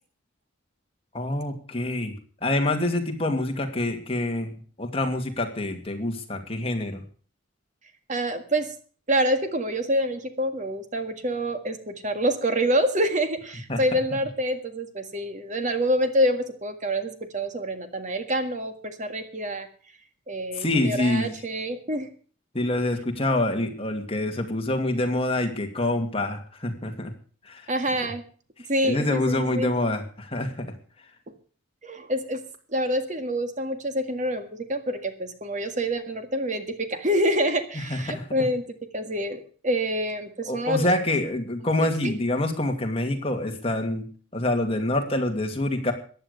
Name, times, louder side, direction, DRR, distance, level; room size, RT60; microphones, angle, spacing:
voice 1, 1.1-2.1 2.4-7.0 13.7-14.0 20.6-21.3 22.5-27.1 27.5-27.7 28.8-30.7 37.9-38.2 40.5-44.1 44.3-45.9, left 1 dB, 30° left, 4 dB, 2.3 m, -26 dB
voice 2, 8.1-8.7 9.1-19.7 20.3-22.1 27.7-28.2 28.7-29.7 31.8-32.4 32.7-38.6 38.9-40.9 41.8-42.1, equal, 40° right, 8 dB, 1.8 m, -27 dB
15.0 x 10.5 x 6.8 m, 0.42 s
head